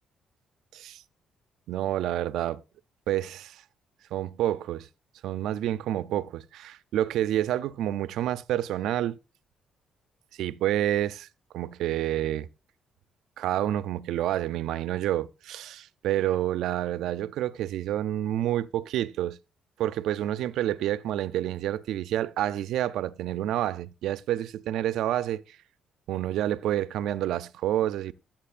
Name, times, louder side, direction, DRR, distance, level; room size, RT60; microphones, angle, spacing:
voice 1, 1.7-2.6 3.1-3.6 4.1-4.9 5.2-9.2 10.3-11.3 11.5-12.5 13.4-19.4 19.8-25.6 26.1-28.1, right 12 dB, 85° right, 0.4 m, -28 dB
13.5 x 7.4 x 2.5 m
cardioid pair, 90°, 0 cm